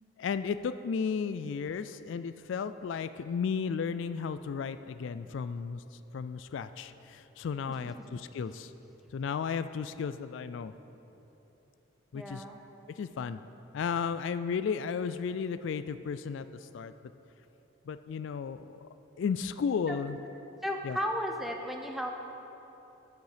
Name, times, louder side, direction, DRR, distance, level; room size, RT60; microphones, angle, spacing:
voice 1, 0.2-8.7 9.1-10.7 12.1-12.4 12.9-13.4 13.7-16.9 17.9-18.8 19.2-20.2 20.8-21.0, left 6 dB, 70° left, 12 dB, 0.3 m, -34 dB
voice 2, 12.1-12.6 19.9-20.0 20.6-22.1, equal, ahead, 2 dB, 0.7 m, -34 dB
10.5 x 8.1 x 5.0 m, 3.0 s
head